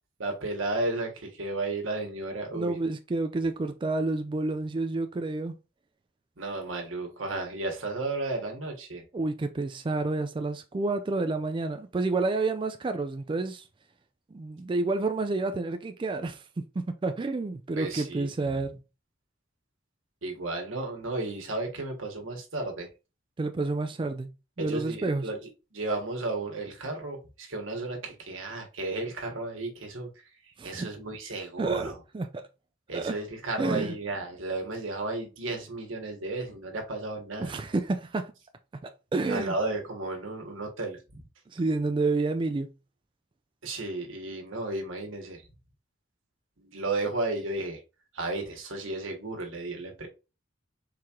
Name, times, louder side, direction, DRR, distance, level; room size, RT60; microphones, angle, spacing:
voice 1, 0.2-2.8 6.4-9.0 17.8-18.3 20.2-22.9 24.6-25.4 25.7-30.1 30.6-31.9 32.9-37.6 39.3-41.2 43.6-45.4 46.6-47.8 48.1-50.1, right 2 dB, 85° right, 1.5 m, -33 dB
voice 2, 2.5-5.6 9.1-13.6 14.3-18.7 23.4-24.3 24.6-25.3 30.6-30.9 31.6-32.4 32.9-33.2 33.6-34.0 37.4-38.3 39.1-39.5 41.5-42.7, right 3 dB, 25° right, 0.3 m, -29 dB
4.7 x 3.6 x 2.9 m
head